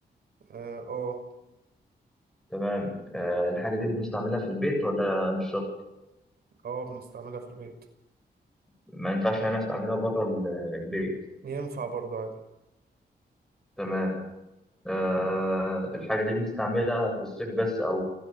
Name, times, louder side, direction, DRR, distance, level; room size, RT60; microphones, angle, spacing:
voice 1, 0.5-1.2 6.6-7.7 11.4-12.3, right 5 dB, 70° right, 4 dB, 5.8 m, -35 dB
voice 2, 2.5-5.6 8.9-11.2 13.8-14.3 14.8-18.0, equal, 5° left, 0 dB, 7.8 m, -28 dB
28.5 x 13.0 x 7.4 m, 0.98 s
wide cardioid pair, 105°, 17 cm